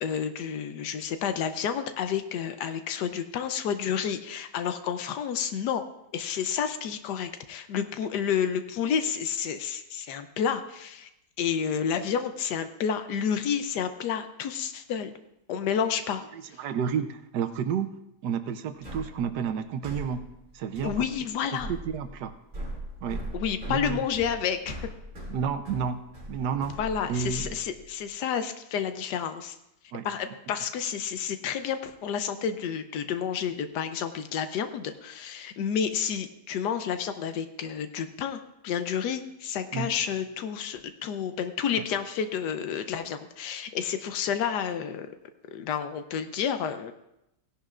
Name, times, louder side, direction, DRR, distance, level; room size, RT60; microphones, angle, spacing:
voice 1, 0.0-5.8 6.1-11.1 11.4-15.1 15.5-16.2 16.5-16.6 20.8-21.7 23.3-24.8 26.8-29.6 30.0-45.1 45.5-46.9, left 8 dB, 90° left, 9 dB, 1.3 m, -30 dB
voice 2, 16.3-18.0 18.2-20.2 20.5-21.0 21.5-22.3 23.0-23.2 23.7-24.1 25.3-26.0 26.3-26.8 27.1-27.5 29.9-30.1 39.7-39.9 41.8-41.9, right 7 dB, 90° right, 9 dB, 1.3 m, -31 dB
sound 1, 18.8-28.0, equal, 50° right, 3.2 m, -40 dB
16.5 x 11.5 x 2.5 m, 0.85 s
omnidirectional pair, 1.7 m